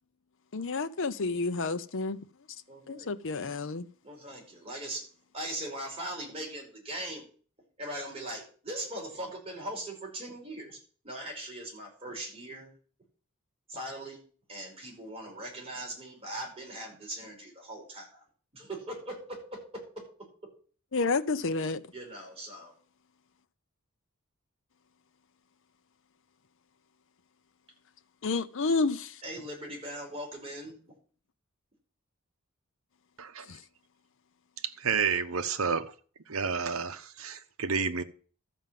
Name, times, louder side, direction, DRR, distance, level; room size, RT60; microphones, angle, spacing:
voice 1, 0.5-2.2 2.9-3.9 20.9-21.8 28.2-29.2 33.5-33.6, left 3 dB, 60° left, 0.7 m, -30 dB
voice 2, 2.7-3.1 4.0-5.0 5.3-7.3 7.8-10.8 11.0-12.7 13.7-14.2 14.5-18.2 18.5-20.0 21.9-22.7 29.2-30.7, right 1 dB, 30° right, 5.2 m, -40 dB
voice 3, 33.2-33.5 34.6-35.8 36.3-38.0, right 6 dB, 70° right, 1.0 m, -30 dB
13.5 x 5.4 x 7.6 m
head